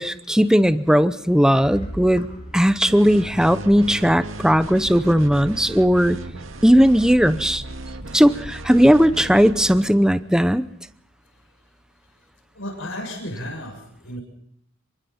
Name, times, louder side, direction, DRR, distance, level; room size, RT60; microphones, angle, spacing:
voice 1, 0.0-2.2 2.5-6.2 6.6-7.6 8.1-10.6, equal, 5° right, 12 dB, 0.7 m, -17 dB
sound 1, 1.6-5.5, equal, 40° left, 6.5 m, -39 dB
sound 2, 2.9-9.9, right 1 dB, 90° right, 2.1 m, -36 dB
voice 2, 12.5-14.2, left 1 dB, 80° left, 3 dB, 6.9 m, -33 dB
26.5 x 24.0 x 4.3 m, 0.69 s
head